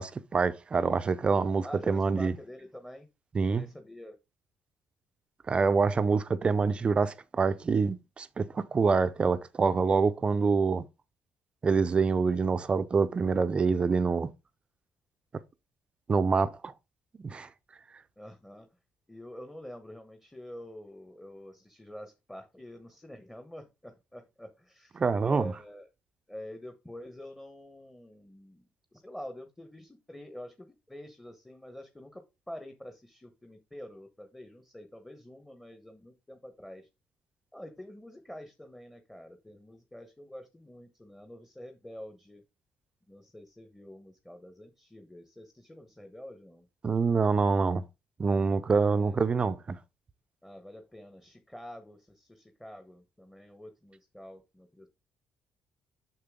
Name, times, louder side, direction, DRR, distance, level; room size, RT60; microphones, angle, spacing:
voice 1, 0.0-2.3 3.3-3.6 5.5-10.8 11.6-14.3 16.1-16.7 17.2-17.5 25.0-25.5 46.8-47.8 48.2-49.8, right 4 dB, 30° right, 0.6 m, -26 dB
voice 2, 1.6-3.1 3.5-4.2 5.8-6.1 18.2-18.7 19.1-25.9 26.3-36.9 37.5-42.4 43.1-46.7 48.8-49.2 50.4-54.9, left 1 dB, 5° left, 1.1 m, -47 dB
6.7 x 6.6 x 3.7 m
cardioid pair, 105°, 3 cm